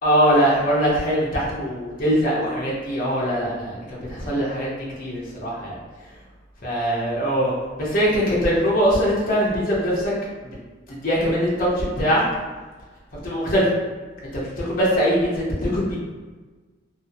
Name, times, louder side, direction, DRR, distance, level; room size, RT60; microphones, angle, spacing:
voice 1, 0.0-4.7 5.0-5.8 6.6-10.1 10.4-10.5 10.9-12.2 13.1-13.7 14.3-16.0, equal, 45° left, -6 dB, 0.7 m, -22 dB
2.6 x 2.4 x 2.6 m, 1.3 s
head